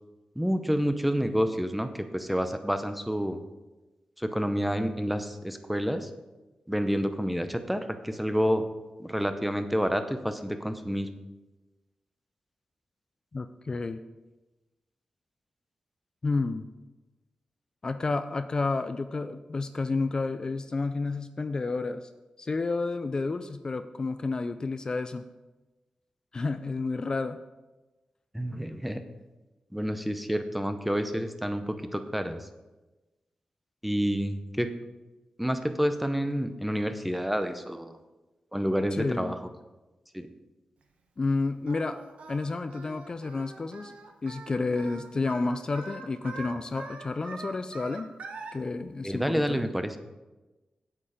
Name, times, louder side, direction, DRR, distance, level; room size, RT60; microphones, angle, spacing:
voice 1, 0.4-3.4 4.2-6.1 6.7-8.7 9.0-11.1 28.3-29.0 29.7-32.5 33.8-34.7 35.4-38.0 38.5-39.4 40.1-40.3 49.0-49.9, equal, 5° right, 8 dB, 0.7 m, -29 dB
voice 2, 13.3-14.0 16.2-16.7 17.8-22.1 22.4-25.2 26.3-27.4 38.9-39.3 41.2-42.0 42.3-43.9 44.2-48.1 48.5-49.7, left 3 dB, 35° left, 10 dB, 0.4 m, -30 dB
Singing, 41.7-48.5, right 3 dB, 80° right, 1.1 m, -44 dB
8.5 x 7.9 x 4.9 m, 1.1 s
wide cardioid pair, 105°, 2 cm